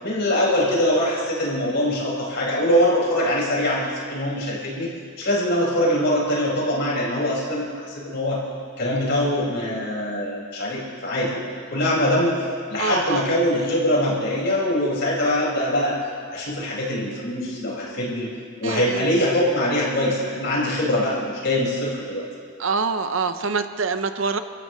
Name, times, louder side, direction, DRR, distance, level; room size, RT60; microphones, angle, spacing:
voice 1, 0.0-4.9 5.2-8.4 8.8-11.4 11.7-12.3 12.7-16.0 16.3-18.3 18.6-22.3, left 1 dB, 55° left, -5 dB, 5.4 m, -23 dB
voice 2, 12.8-13.2 18.6-19.0 22.6-24.4, right 4 dB, 65° right, 9 dB, 0.8 m, -25 dB
30.0 x 14.0 x 3.2 m, 2.1 s
head